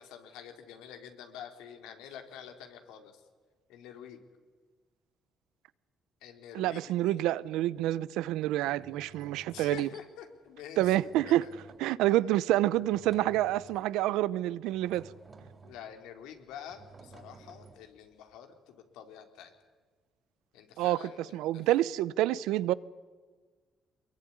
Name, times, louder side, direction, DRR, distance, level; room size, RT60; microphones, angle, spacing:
voice 1, 0.0-3.2 3.7-4.2 6.2-7.2 9.5-10.9 11.2-11.6 15.6-19.5 20.5-21.7, left 9 dB, 90° left, 6 dB, 3.3 m, -47 dB
voice 2, 6.5-9.9 10.8-11.4 11.8-15.1 20.8-21.0 21.3-22.7, right 15 dB, 90° right, 19 dB, 0.7 m, -28 dB
sound 1, 7.8-8.0 8.8-10.1 10.7-12.0 12.7-14.0 14.7-15.9 16.7-18.0, right 4 dB, 40° right, 4.1 m, -54 dB
24.0 x 21.5 x 9.8 m, 1.4 s
supercardioid pair, 70°, 0 cm